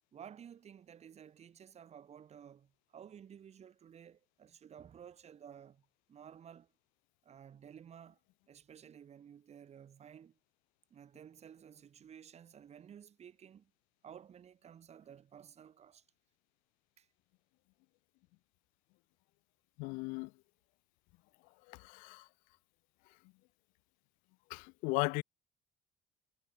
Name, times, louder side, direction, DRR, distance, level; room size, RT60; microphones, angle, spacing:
voice 1, 0.1-5.8 6.1-6.7 7.2-8.2 8.5-10.4 10.9-13.7 14.0-16.0 17.0-17.1, right 8 dB, 50° right, 6.0 m, -54 dB
voice 2, 19.8-20.3 21.7-22.3 24.5-25.2, left 28 dB, 80° left, 0.5 m, -36 dB
supercardioid pair, 65°, 14 cm